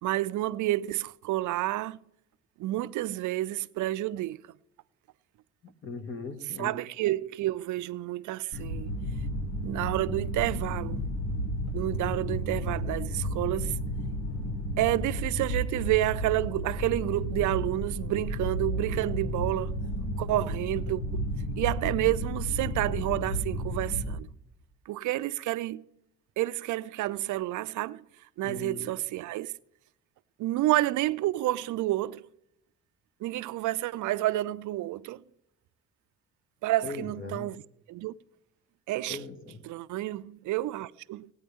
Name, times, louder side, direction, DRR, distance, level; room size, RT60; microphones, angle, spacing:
voice 1, 0.0-2.0 2.6-4.4 6.6-8.9 9.6-11.0 11.7-13.8 14.8-19.8 20.2-21.2 21.6-24.3 24.9-25.8 26.4-28.0 28.4-29.5 30.4-32.2 33.2-35.2 36.6-37.6 37.9-38.1 38.9-39.2 39.6-41.3, right 16 dB, 75° right, 0.5 m, -29 dB
voice 2, 5.8-6.7 8.5-8.6 28.4-28.9 36.8-37.5 39.1-39.6, left 3 dB, 40° left, 2.0 m, -39 dB
sound 1, 8.5-24.2, equal, 70° left, 1.7 m, -32 dB
18.5 x 8.6 x 3.6 m
cardioid pair, 90°, 30 cm